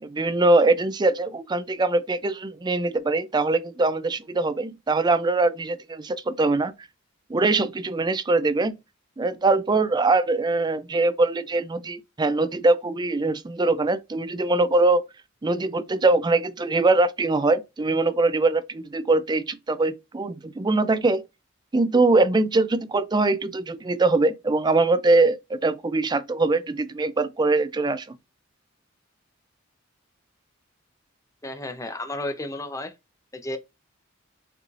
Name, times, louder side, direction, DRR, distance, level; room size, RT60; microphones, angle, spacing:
voice 1, 0.0-6.7 7.3-8.8 9.2-15.0 15.4-21.2 21.7-28.1, right 3 dB, 20° right, 0.4 m, -22 dB
voice 2, 31.4-32.9 33.3-33.6, left 1 dB, 15° left, 0.7 m, -32 dB
6.6 x 3.1 x 2.5 m
head